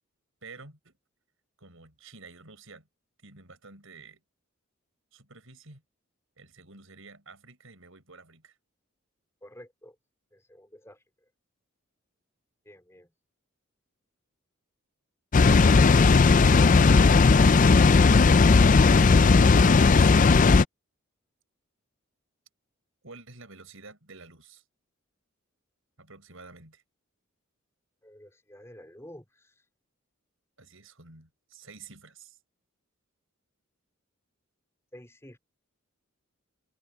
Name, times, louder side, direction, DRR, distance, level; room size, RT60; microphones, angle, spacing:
voice 1, 0.4-1.0 1.6-2.9 3.2-4.2 5.1-5.8 6.4-8.6 16.5-18.6 19.8-20.5 23.0-24.6 26.0-26.8 30.6-32.4, right 4 dB, 70° right, 6.1 m, -50 dB
voice 2, 9.4-10.0 10.3-11.3 12.6-13.1 28.0-29.6 34.9-35.4, equal, 15° left, 4.3 m, -50 dB
Water, 15.3-20.6, left 4 dB, 35° left, 0.4 m, -17 dB
head